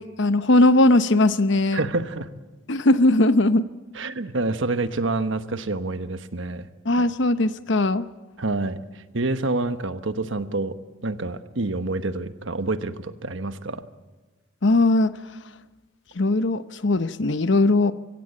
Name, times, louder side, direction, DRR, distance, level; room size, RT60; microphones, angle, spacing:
voice 1, 0.0-1.8 2.7-3.7 6.8-8.1 14.6-15.1 16.2-17.9, left 2 dB, 60° left, 13 dB, 0.9 m, -19 dB
voice 2, 1.7-2.3 3.9-6.7 8.4-10.7 11.0-13.8, right 2 dB, 65° right, 11 dB, 1.2 m, -27 dB
24.5 x 16.5 x 8.7 m, 1.2 s
head